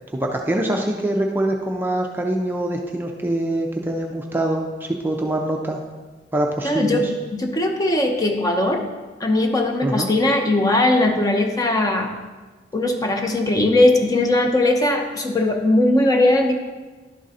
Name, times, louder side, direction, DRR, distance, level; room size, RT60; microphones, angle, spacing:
voice 1, 0.1-5.8 6.3-7.1 9.8-10.1, right 1 dB, 10° right, 1 dB, 0.4 m, -24 dB
voice 2, 6.6-8.8 9.2-12.2 12.7-16.5, left 1 dB, 20° left, 3 dB, 0.7 m, -19 dB
11.0 x 3.7 x 4.1 m, 1.3 s
head